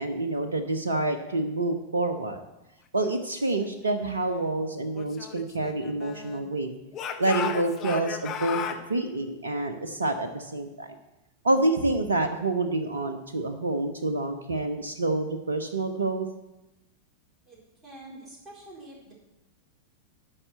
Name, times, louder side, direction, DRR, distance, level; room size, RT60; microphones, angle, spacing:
voice 1, 0.0-2.4 2.9-6.7 7.2-8.6 8.9-11.0 11.4-16.3, right 2 dB, 75° right, 7 dB, 0.7 m, -27 dB
Speech / Shout, 4.9-6.5 6.9-8.8, left 8 dB, 30° left, 0.9 m, -35 dB
voice 2, 17.8-19.1, right 1 dB, 20° right, -4 dB, 4.2 m, -46 dB
9.8 x 5.7 x 7.8 m, 0.96 s
figure-of-eight pair, 90°, 0 cm